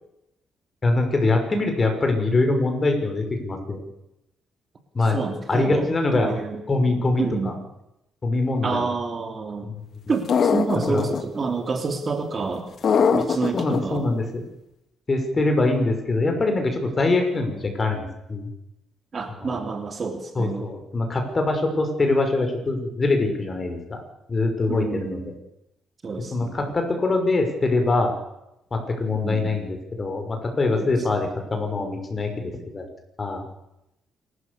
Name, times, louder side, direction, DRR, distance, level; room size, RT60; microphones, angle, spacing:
voice 1, 0.8-3.8 4.9-5.2 5.5-6.4 6.7-7.5 8.2-8.9 9.6-9.7 10.9-11.0 13.5-14.2 15.1-18.5 19.4-19.6 20.4-24.0 24.3-25.2 26.3-28.2 28.7-32.8 33.2-33.4, left 2 dB, 30° left, 4 dB, 6.0 m, -23 dB
voice 2, 5.1-6.6 6.9-7.6 8.6-9.7 10.1-12.7 13.1-14.0 19.1-20.7 24.7-25.3 26.0-26.6 29.1-29.6 30.8-31.3, right 4 dB, 40° right, 5 dB, 3.2 m, -29 dB
sound 1, 10.3-11.2 12.8-13.8, left 6 dB, 55° left, 2.0 m, -21 dB
28.0 x 13.5 x 7.1 m, 0.83 s
cardioid pair, 90°, 0 cm